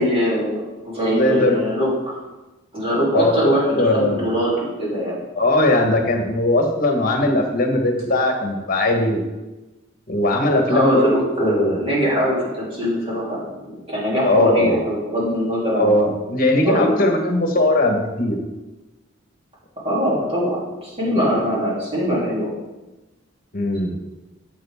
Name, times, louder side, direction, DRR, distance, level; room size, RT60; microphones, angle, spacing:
voice 1, 0.0-2.2 2.7-5.2 10.7-16.1 16.6-17.1 19.8-22.5, equal, 30° right, -6 dB, 3.1 m, -22 dB
voice 2, 1.1-1.6 3.1-4.2 5.4-9.2 10.1-11.8 14.2-14.8 15.7-18.4 23.5-23.9, left 1 dB, 45° left, 3 dB, 1.3 m, -19 dB
8.5 x 7.8 x 3.6 m, 1.1 s
head